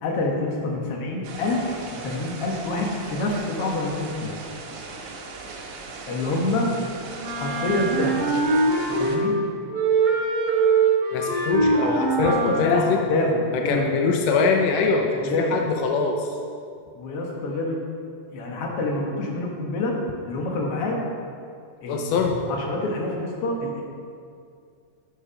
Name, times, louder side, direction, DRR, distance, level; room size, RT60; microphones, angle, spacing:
voice 1, 0.0-4.3 6.1-6.7 7.2-8.2 8.9-9.3 12.2-14.0 15.2-15.6 17.0-17.8 18.3-20.0 20.3-21.0 21.8-23.8, left 2 dB, 55° left, -1 dB, 1.9 m, -26 dB
sound 1, 1.2-9.2, right 3 dB, 70° right, 2.3 m, -38 dB
Wind instrument woodwind instrument, 7.2-9.4 9.7-12.8, right 3 dB, 50° right, 1.9 m, -22 dB
voice 2, 11.1-13.0 13.5-16.3 21.9-22.4, left 4 dB, 85° left, 2 dB, 1.4 m, -23 dB
10.0 x 7.3 x 5.1 m, 2.3 s
omnidirectional pair, 3.9 m